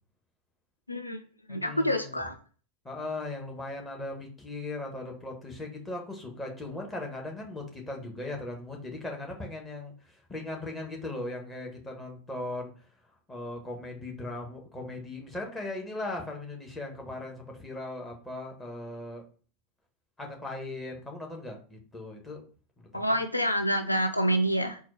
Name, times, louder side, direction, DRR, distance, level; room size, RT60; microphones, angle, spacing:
voice 1, 0.9-1.2 1.5-2.4 22.9-24.8, equal, 85° left, 7 dB, 0.3 m, -27 dB
voice 2, 1.5-2.2 2.8-12.7 13.3-19.2 20.2-22.4 22.8-23.2, left 2 dB, 15° left, 0 dB, 1.2 m, -38 dB
4.2 x 2.3 x 4.2 m, 0.40 s
figure-of-eight pair, 85°, 0 cm